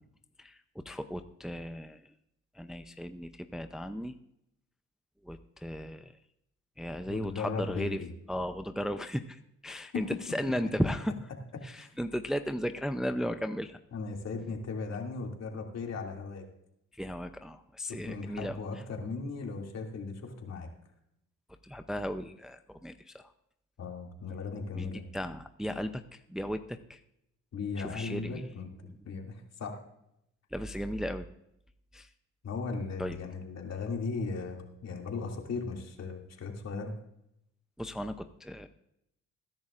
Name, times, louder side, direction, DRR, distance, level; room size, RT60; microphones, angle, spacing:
voice 1, 0.4-2.1 2.5-4.1 5.2-6.2 6.8-8.0 8.3-11.1 11.6-13.8 16.9-18.6 21.6-23.3 24.7-27.0 27.8-28.5 30.5-31.3 31.9-32.1 33.0-33.2 37.8-38.7, equal, ahead, 8 dB, 0.6 m, -35 dB
voice 2, 7.1-8.1 9.9-10.1 11.7-11.9 13.9-16.4 17.9-20.7 23.8-25.0 27.5-28.7 29.0-29.8 32.4-36.9, left 4 dB, 60° left, 1 dB, 2.6 m, -37 dB
20.5 x 10.5 x 2.5 m, 0.79 s
cardioid pair, 90°, 30 cm